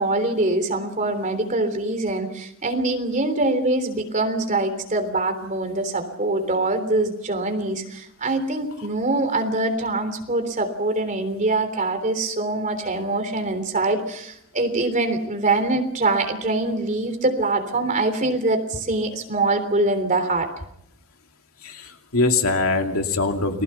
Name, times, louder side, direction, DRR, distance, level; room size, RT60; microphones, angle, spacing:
voice 1, 0.0-20.5, right 2 dB, 35° right, 7 dB, 3.4 m, -24 dB
voice 2, 21.6-23.6, left 3 dB, 75° left, 4 dB, 2.6 m, -22 dB
30.0 x 20.5 x 5.8 m, 0.77 s
head